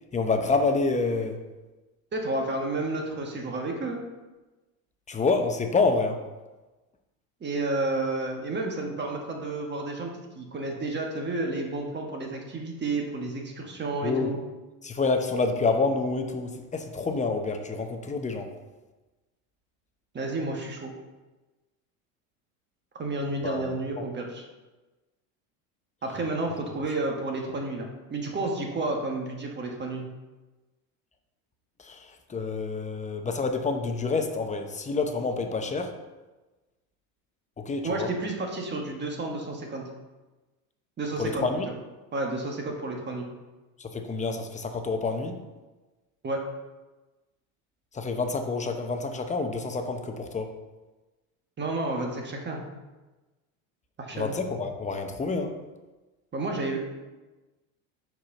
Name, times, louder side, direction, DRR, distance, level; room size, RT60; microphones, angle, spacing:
voice 1, 0.1-1.4 5.1-6.2 14.0-14.3 14.8-18.5 23.4-24.0 31.8-35.9 37.6-38.1 41.2-41.7 43.8-45.4 47.9-50.5 54.1-55.5, left 3 dB, 20° left, 5 dB, 0.8 m, -28 dB
voice 2, 2.1-4.0 7.4-14.4 20.1-20.9 22.9-24.4 26.0-30.0 37.8-39.9 41.0-41.7 42.1-43.3 46.2-46.4 51.6-52.6 54.0-54.3 56.3-56.8, right 2 dB, 25° right, 1 dB, 1.4 m, -31 dB
4.7 x 4.6 x 5.8 m, 1.2 s
supercardioid pair, 100°, 40 cm